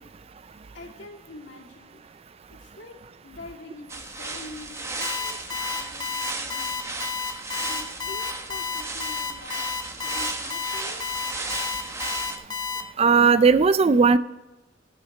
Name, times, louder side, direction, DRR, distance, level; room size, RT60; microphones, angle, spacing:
voice 1, 0.7-2.0 2.6-7.1 7.6-11.1, left 2 dB, 70° left, -1 dB, 2.5 m, -45 dB
sound 1, 3.9-12.4, right 3 dB, 15° right, 1.0 m, -35 dB
Alarm, 5.0-12.8, left 5 dB, 25° left, 0.9 m, -30 dB
voice 2, 13.0-14.2, right 5 dB, 30° right, 14 dB, 0.4 m, -17 dB
13.5 x 6.4 x 4.2 m, 1.0 s
head